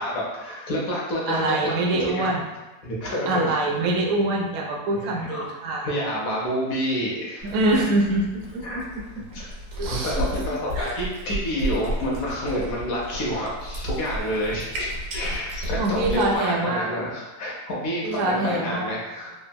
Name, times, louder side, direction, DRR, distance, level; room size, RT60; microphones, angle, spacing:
voice 1, 0.0-2.3 2.8-3.5 4.9-5.5 5.8-7.5 8.6-8.8 9.3-9.4 9.9-19.3, equal, 70° left, -4 dB, 1.0 m, -28 dB
voice 2, 1.3-2.4 3.3-5.9 7.4-9.0 9.8-11.0 15.8-16.9 18.0-18.9, right 2 dB, 65° right, -1 dB, 0.8 m, -25 dB
Cat, 7.4-16.4, equal, 85° right, 1.4 m, -33 dB
3.5 x 2.0 x 2.2 m, 1.1 s
omnidirectional pair, 1.7 m